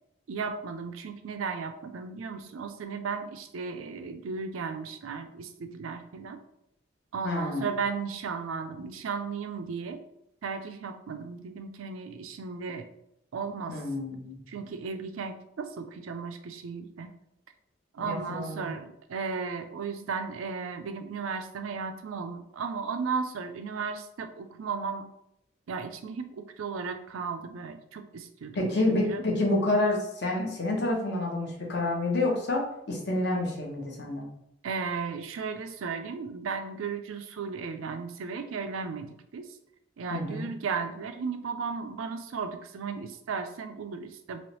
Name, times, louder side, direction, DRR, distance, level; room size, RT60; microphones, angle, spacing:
voice 1, 0.3-6.4 7.1-10.0 10.4-12.9 13.3-13.8 14.5-17.1 17.9-25.0 25.7-29.2 34.6-39.5 40.0-44.4, right 5 dB, 85° right, 7 dB, 0.4 m, -35 dB
voice 2, 7.2-7.7 13.7-14.4 18.1-18.7 28.5-34.3 40.1-40.5, left 2 dB, 55° left, 0 dB, 0.8 m, -28 dB
3.1 x 2.9 x 3.0 m, 0.78 s
head